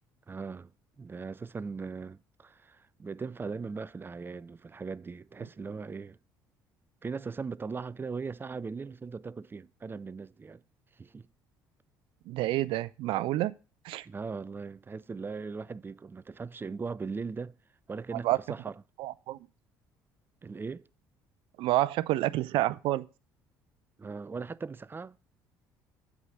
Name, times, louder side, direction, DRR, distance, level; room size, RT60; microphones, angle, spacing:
voice 1, 0.3-0.7 1.0-6.2 7.0-10.6 11.0-11.3 14.0-17.6 17.9-18.7 20.4-20.9 24.0-25.2, right 4 dB, 25° right, 0.5 m, -39 dB
voice 2, 12.3-13.5 13.8-14.1 18.1-18.4 19.0-19.4 21.6-23.0, right 16 dB, 70° right, 0.5 m, -28 dB
8.2 x 4.9 x 6.2 m
supercardioid pair, 65°, 9 cm